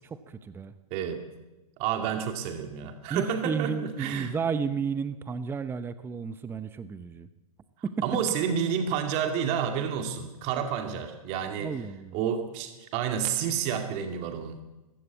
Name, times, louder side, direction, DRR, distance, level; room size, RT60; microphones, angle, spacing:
voice 1, 0.0-0.7 3.1-7.3 7.8-8.0 11.6-12.2, right 6 dB, 10° right, 13 dB, 0.8 m, -32 dB
voice 2, 0.9-1.2 1.8-4.3 8.0-11.7 12.1-14.6, right 8 dB, 35° right, 6 dB, 2.3 m, -30 dB
20.5 x 15.5 x 8.5 m, 1.1 s
hypercardioid pair, 125°, 19 cm